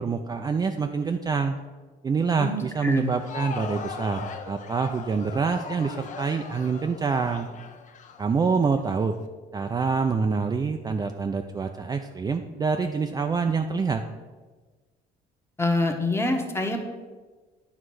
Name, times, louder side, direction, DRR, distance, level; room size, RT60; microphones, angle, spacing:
voice 1, 0.0-1.6 2.0-7.5 8.2-9.1 9.5-14.0, right 5 dB, 25° right, 5 dB, 0.4 m, -26 dB
voice 2, 2.4-3.1 15.6-16.8, left 2 dB, 15° left, 4 dB, 1.0 m, -26 dB
Crowd, 3.0-8.9, left 5 dB, 50° left, 0.7 m, -39 dB
9.3 x 3.2 x 6.2 m, 1.3 s
cardioid pair, 110°, 17 cm